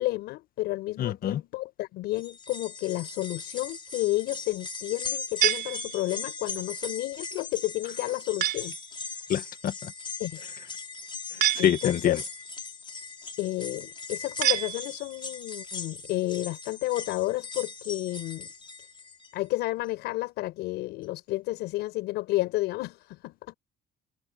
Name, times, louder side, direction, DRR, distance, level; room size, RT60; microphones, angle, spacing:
voice 1, 0.0-8.8 10.2-10.5 11.6-12.3 13.4-18.5 19.3-23.5, left 18 dB, 90° left, 6.1 m, -31 dB
voice 2, 1.0-1.4 9.3-9.9 11.6-12.2, left 10 dB, 60° left, 1.8 m, -25 dB
sound 1, 2.1-19.4 19.8-19.9 21.0-21.1, left 4 dB, 30° left, 7.3 m, -39 dB
sound 2, 5.4-6.4 8.4-8.9 11.4-12.2 14.4-15.3, right 13 dB, 70° right, 4.2 m, -28 dB
cardioid pair, 110°, 17 cm